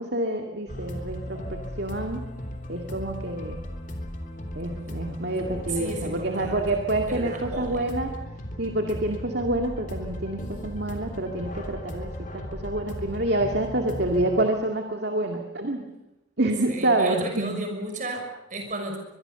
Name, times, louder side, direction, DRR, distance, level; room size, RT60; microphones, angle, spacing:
voice 1, 0.0-2.2 2.7-3.6 4.5-8.1 8.6-15.8 16.4-17.6, right 2 dB, 55° right, 3 dB, 2.2 m, -27 dB
sound 1, 0.7-14.4, equal, 40° left, 3.3 m, -36 dB
voice 2, 5.7-6.7 7.1-7.9 16.7-19.0, right 1 dB, 40° right, 3 dB, 6.1 m, -34 dB
23.0 x 23.0 x 7.0 m, 0.92 s
head